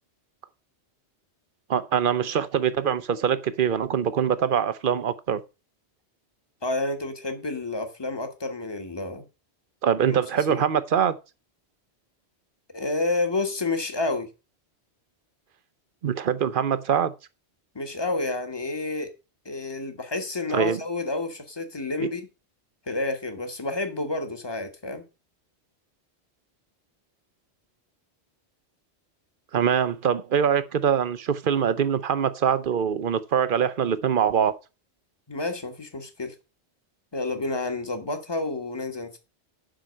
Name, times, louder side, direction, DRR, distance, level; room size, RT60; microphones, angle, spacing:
voice 1, 1.7-5.4 9.8-11.2 16.0-17.1 20.5-20.8 22.0-22.1 29.5-34.5, right 8 dB, 55° right, 0.9 m, -23 dB
voice 2, 6.6-9.2 10.1-10.2 10.5-10.6 12.7-14.3 17.7-19.1 19.4-22.3 22.9-25.1 35.3-36.3 37.1-39.2, left 2 dB, 25° left, 1.5 m, -29 dB
7.7 x 5.8 x 6.4 m
omnidirectional pair, 1.1 m